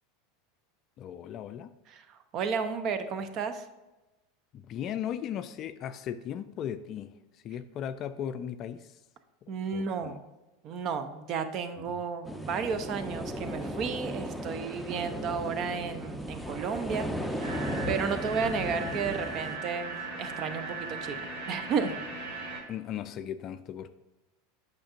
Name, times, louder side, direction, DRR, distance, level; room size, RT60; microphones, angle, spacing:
voice 1, 1.0-1.7 4.5-7.1 7.4-8.9 9.4-10.2 11.8-12.0 22.7-23.9, left 9 dB, 45° left, 11 dB, 0.3 m, -37 dB
voice 2, 1.9-3.6 9.5-10.2 10.6-21.2 21.5-22.0, right 5 dB, 45° right, 10 dB, 0.7 m, -33 dB
sound 1, 12.2-19.6, equal, 5° right, 0.7 m, -36 dB
sound 2, 17.4-22.6, right 3 dB, 70° right, 1.9 m, -38 dB
8.5 x 5.8 x 2.5 m, 1.1 s
hypercardioid pair, 85°, 0 cm